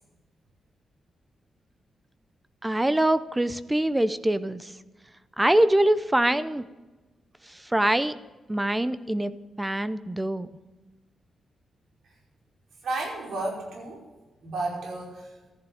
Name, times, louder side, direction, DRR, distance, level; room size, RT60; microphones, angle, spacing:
voice 1, 2.6-4.7 5.4-6.7 7.5-8.1 8.5-9.3 9.6-10.5, right 1 dB, 10° right, 14 dB, 0.6 m, -24 dB
voice 2, 12.8-14.0 14.4-15.3, right 2 dB, 85° right, -1 dB, 5.2 m, -32 dB
14.0 x 11.5 x 7.1 m, 1.2 s
wide cardioid pair, 125°, 0 cm